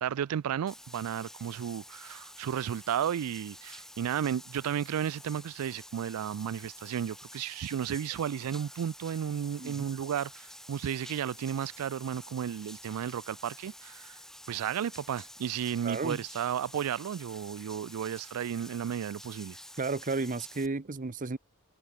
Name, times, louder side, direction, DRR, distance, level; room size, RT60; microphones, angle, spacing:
voice 1, 0.0-14.2 14.5-19.6, right 9 dB, 85° right, 0.3 m, -33 dB
Bathtub (filling or washing), 0.7-20.7, left 1 dB, ahead, 6.1 m, -49 dB
voice 2, 15.8-16.2 19.8-21.4, right 3 dB, 40° right, 0.8 m, -33 dB
head